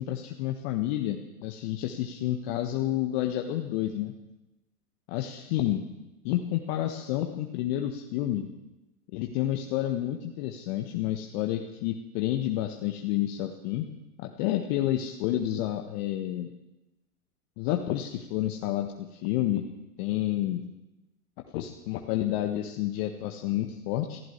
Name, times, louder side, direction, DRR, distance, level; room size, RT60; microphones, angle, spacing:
voice 1, 0.0-4.1 5.1-5.9 6.2-8.5 9.1-13.9 14.2-16.5 17.6-19.7 20.0-20.6 21.5-24.2, left 13 dB, 40° left, 3 dB, 1.3 m, -30 dB
27.0 x 15.5 x 3.3 m, 0.98 s
figure-of-eight pair, 105°, 46 cm